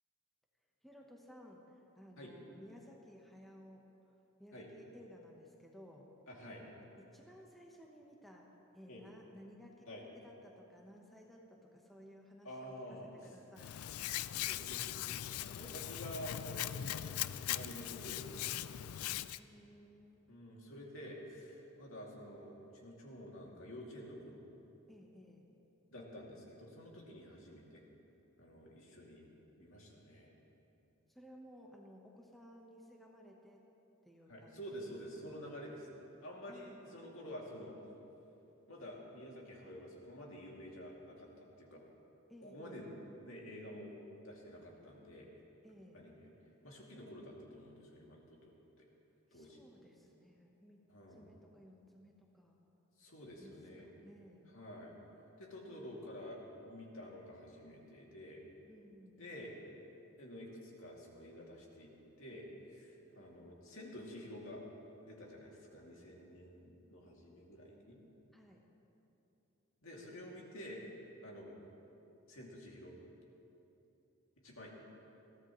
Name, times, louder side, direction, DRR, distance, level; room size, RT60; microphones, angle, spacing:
voice 1, 0.8-3.9 4.4-6.1 6.6-6.7 7.0-13.8 19.3-20.3 24.9-25.5 31.1-33.7 34.0-34.6 35.2-35.3 36.5-37.0 42.3-42.9 45.6-46.1 49.3-50.9 51.2-52.6 53.4-54.6 55.8-56.2 58.7-59.3 68.3-68.7, equal, ahead, -1 dB, 1.0 m, -58 dB
voice 2, 6.3-6.6 8.9-9.0 9.9-10.0 12.4-13.1 14.5-18.9 20.3-22.5 22.8-24.4 25.9-27.8 28.4-29.2 29.6-30.3 34.3-35.9 36.2-37.8 38.7-41.8 42.4-42.9 43.3-44.0 44.2-45.3 45.9-46.2 46.6-48.5 48.8-48.9 49.3-49.6 50.9-51.3 53.0-53.9 54.5-54.9 55.4-58.4 59.2-59.5 60.2-61.9 62.2-64.6 65.0-68.0 69.8-70.8 71.2-71.6 72.3-72.9 74.4-74.7, equal, 65° left, -3 dB, 2.6 m, -50 dB
Hands, 13.6-19.4, left 12 dB, 85° left, 0.4 m, -40 dB
21.5 x 15.5 x 3.1 m, 3.0 s
head